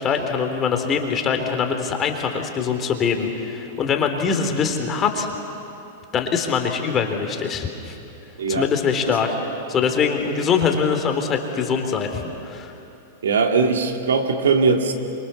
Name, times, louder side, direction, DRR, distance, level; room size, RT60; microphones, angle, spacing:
voice 1, 0.0-5.3 6.1-8.0 8.5-9.3 9.7-12.7, left 6 dB, 30° left, 5 dB, 3.3 m, -23 dB
voice 2, 13.2-14.9, right 4 dB, 75° right, 4 dB, 2.4 m, -20 dB
28.0 x 25.0 x 7.0 m, 2.8 s
hypercardioid pair, 105°, 0 cm